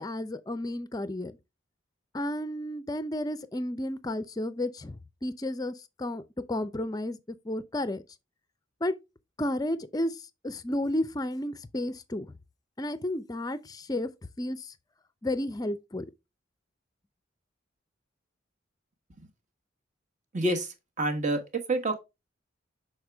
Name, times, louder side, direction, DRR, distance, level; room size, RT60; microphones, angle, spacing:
voice 1, 0.0-1.4 2.1-6.2 6.5-8.0 8.8-8.9 9.4-12.3 12.8-14.1 14.4-14.7 15.2-16.1, left 1 dB, 20° left, 0.5 m, -32 dB
voice 2, 20.3-21.4 21.7-22.0, right 1 dB, 40° right, 1.2 m, -28 dB
6.4 x 4.3 x 3.4 m
head